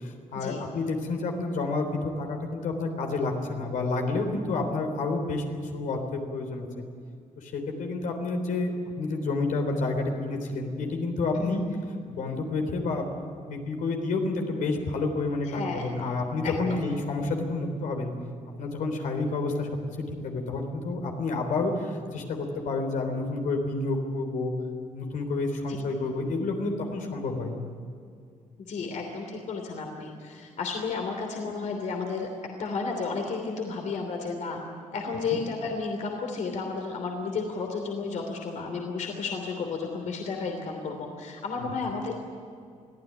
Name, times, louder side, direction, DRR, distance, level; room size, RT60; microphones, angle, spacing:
voice 1, 0.0-5.4 5.7-6.7 7.4-11.6 12.1-13.1 13.4-18.1 18.6-19.7 20.1-24.5 24.9-27.5 35.3-35.4 41.6-41.7, left 3 dB, 85° left, 3 dB, 3.6 m, -29 dB
voice 2, 15.5-15.9 16.4-16.8 25.7-25.8 28.6-32.3 32.6-34.6 34.9-42.2, left 4 dB, 70° left, 2 dB, 3.1 m, -32 dB
23.5 x 15.5 x 9.9 m, 2.3 s
cardioid pair, 125°, 13 cm